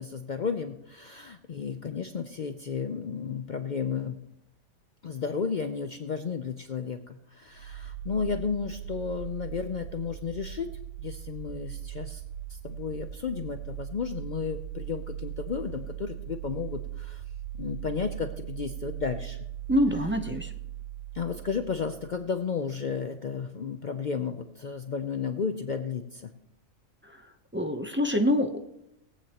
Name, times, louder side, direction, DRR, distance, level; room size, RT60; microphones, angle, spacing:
voice 1, 0.0-4.2 5.0-10.7 11.0-12.2 12.5-17.2 17.6-19.4 21.1-26.3, left 6 dB, 60° left, 7 dB, 0.5 m, -33 dB
sound 1, 7.5-22.3, right 11 dB, 85° right, 2.1 m, -39 dB
voice 2, 19.7-20.5 27.0-27.2 27.5-28.6, left 1 dB, 15° right, 3 dB, 0.5 m, -25 dB
21.0 x 8.5 x 2.9 m, 0.84 s
omnidirectional pair, 1.4 m